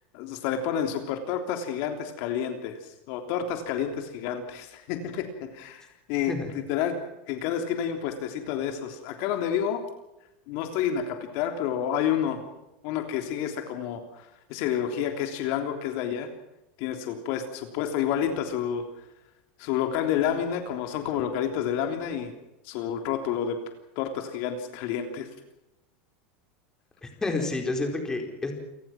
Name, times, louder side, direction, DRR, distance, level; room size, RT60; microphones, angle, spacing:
voice 1, 0.1-7.0 7.3-9.8 10.5-12.4 12.8-16.3 16.8-18.8 19.6-22.3 22.6-23.6 23.9-25.3, left 9 dB, 55° left, 5 dB, 3.3 m, -29 dB
voice 2, 27.0-28.5, left 3 dB, 10° left, 3 dB, 4.5 m, -29 dB
29.0 x 19.5 x 6.0 m, 0.91 s
supercardioid pair, 150°, 6 cm